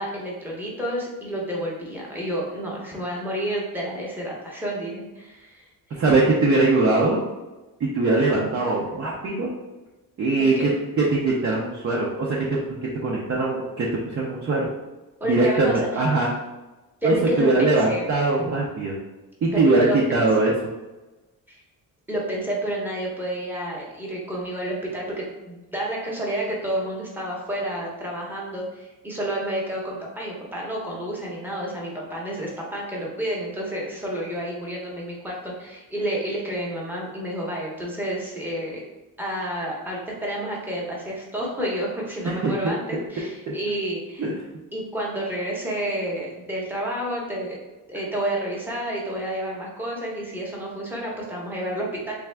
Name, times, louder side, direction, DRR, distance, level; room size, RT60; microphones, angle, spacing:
voice 1, 0.0-6.0 10.4-10.7 15.2-16.0 17.0-18.0 19.5-20.0 21.5-21.6 22.1-38.8 39.2-44.3 44.7-47.6 47.9-52.1, right 1 dB, 5° right, -4 dB, 0.8 m, -30 dB
voice 2, 5.9-7.2 7.8-9.5 10.2-10.7 11.0-12.6 13.0-13.9 14.1-14.7 15.2-16.3 17.0-18.9 19.4-20.5 42.2-42.5 43.5-43.6 44.2-44.3, right 3 dB, 35° right, -4 dB, 0.6 m, -21 dB
3.5 x 3.4 x 3.3 m, 1.1 s
cardioid pair, 165°, 37 cm